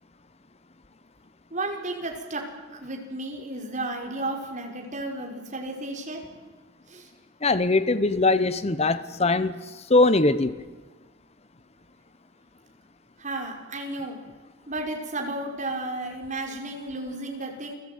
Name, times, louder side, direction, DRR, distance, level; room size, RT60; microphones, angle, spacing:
voice 1, 1.5-2.5 2.8-6.2 6.9-7.1 13.2-14.2 14.7-17.7, right 2 dB, 40° right, 5.2 m, -33 dB
voice 2, 7.4-9.5 9.9-10.6, left 2 dB, 30° left, 0.9 m, -21 dB
29.5 x 19.0 x 9.4 m
head